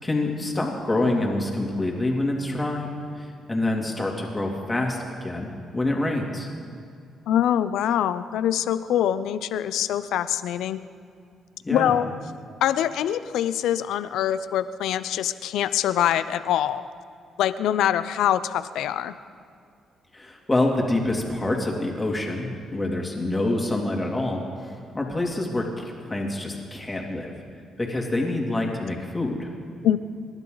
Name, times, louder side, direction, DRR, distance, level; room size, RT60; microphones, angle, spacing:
voice 1, 0.0-6.5 11.6-11.9 20.1-27.3 27.8-29.5, left 2 dB, 20° left, 0 dB, 2.9 m, -26 dB
voice 2, 7.3-10.8 11.7-12.1 12.6-16.9 17.4-19.1 29.8-30.0, left 10 dB, 85° left, 14 dB, 0.6 m, -24 dB
28.0 x 12.0 x 4.0 m, 2.4 s
cardioid pair, 90°, 0 cm